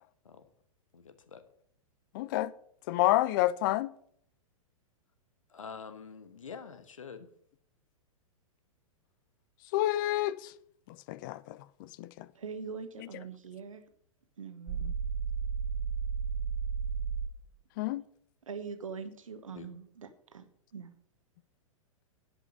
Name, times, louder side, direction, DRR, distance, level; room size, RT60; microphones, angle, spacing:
voice 1, 0.9-1.4 5.5-7.3 19.5-19.7, left 6 dB, 65° left, 1.3 m, -46 dB
voice 2, 2.1-2.5 2.9-3.9 9.7-10.5 11.1-12.3 17.8-18.0, left 16 dB, 35° left, 0.5 m, -29 dB
voice 3, 12.3-13.8 14.4-14.9 18.4-20.5 20.7-21.0, right 5 dB, 70° right, 1.2 m, -43 dB
sound 1, 14.7-17.3, right 6 dB, 20° right, 1.8 m, -33 dB
10.5 x 5.4 x 7.6 m
figure-of-eight pair, 105°, 18 cm